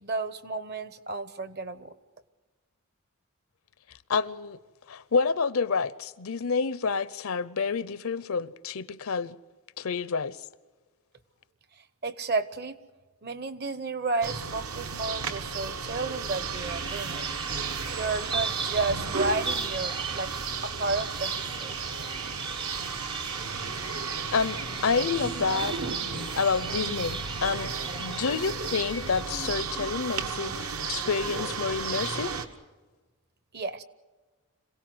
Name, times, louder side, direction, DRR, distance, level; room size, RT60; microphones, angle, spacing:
voice 1, 0.0-1.9 12.0-12.7 13.2-17.3 17.9-20.3 20.6-21.8 33.5-33.8, right 3 dB, 45° right, 0.9 m, -32 dB
voice 2, 4.1-4.6 4.9-9.4 9.8-10.4 23.8-24.0 24.3-25.8 26.4-27.7 28.0-32.3, left 5 dB, 75° left, 0.6 m, -28 dB
sound 1, 14.2-32.5, right 5 dB, 80° right, 1.4 m, -34 dB
sound 2, 16.5-29.2, right 4 dB, 20° right, 0.6 m, -38 dB
26.5 x 17.0 x 7.9 m
head